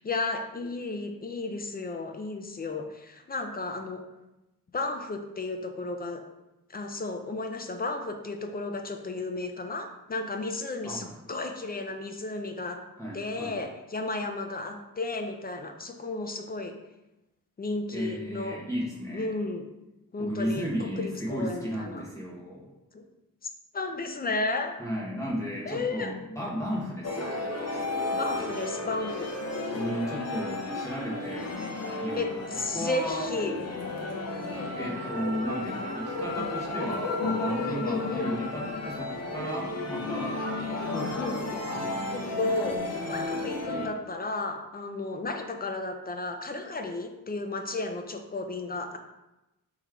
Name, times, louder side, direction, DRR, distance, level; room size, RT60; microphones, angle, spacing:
voice 1, 0.0-4.0 4.7-6.2 6.7-12.8 13.1-16.8 17.6-18.6 19.1-19.7 20.1-22.0 22.9-23.0 23.7-24.8 25.7-26.1 27.8-29.3 32.2-33.5 35.3-35.4 36.4-36.5 37.6-38.3 41.2-41.4 42.1-49.0, left 3 dB, 30° left, 5 dB, 0.3 m, -33 dB
voice 2, 13.0-13.6 17.9-19.3 20.2-22.7 24.8-27.5 29.7-31.5 32.0-32.2 32.7-33.3 34.6-40.4 40.7-41.2, equal, 10° left, -4 dB, 1.1 m, -34 dB
sound 1, 27.0-43.9, left 2 dB, 50° left, 0.7 m, -33 dB
3.7 x 3.1 x 4.5 m, 0.97 s
wide cardioid pair, 160°, 33 cm